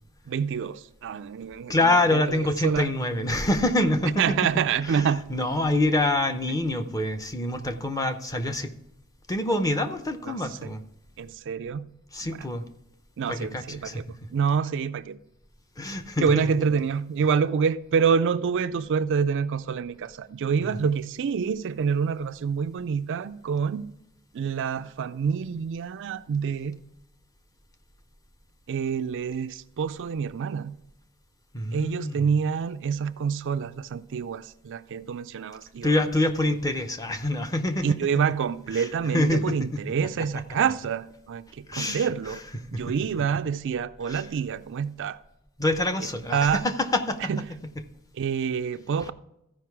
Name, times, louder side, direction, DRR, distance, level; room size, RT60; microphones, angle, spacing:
voice 1, 0.3-2.9 4.2-5.2 10.3-10.7 11.2-11.9 12.2-12.5 13.2-15.2 16.2-23.9 24.3-26.8 28.7-30.8 31.7-35.9 37.8-42.4 42.7-45.2 46.3-46.6 47.3-47.4 48.2-49.1, right 6 dB, 55° right, 0.4 m, -27 dB
voice 2, 1.7-4.4 4.8-8.7 9.3-10.8 12.1-12.6 13.3-14.0 15.8-16.6 20.6-20.9 31.5-32.2 35.8-38.0 38.7-38.9 39.1-39.6 41.7-42.1 42.7-42.8 44.1-44.2 45.6-47.3, left 1 dB, 15° left, 0.7 m, -26 dB
14.5 x 5.2 x 4.6 m
head